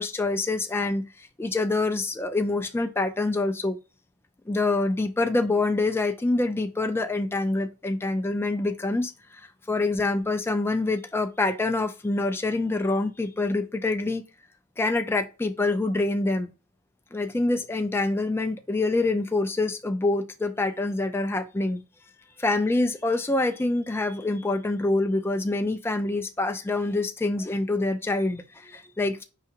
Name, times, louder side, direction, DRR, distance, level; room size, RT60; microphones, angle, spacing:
voice 1, 0.0-3.8 4.5-14.2 14.8-16.5 17.1-21.8 22.4-29.2, left 2 dB, 10° left, 0.4 m, -26 dB
4.8 x 3.3 x 2.8 m
head